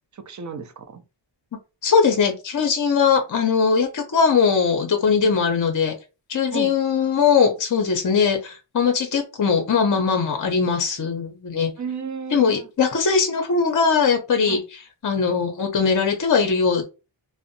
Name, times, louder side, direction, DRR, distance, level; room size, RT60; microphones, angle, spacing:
voice 1, 0.3-1.0 6.5-6.7 11.8-12.7 14.5-14.6, right 6 dB, 40° right, 0.4 m, -33 dB
voice 2, 1.8-5.9 6.3-11.7 12.3-16.9, left 5 dB, 40° left, 0.6 m, -20 dB
2.6 x 2.0 x 2.6 m
wide cardioid pair, 70°, 47 cm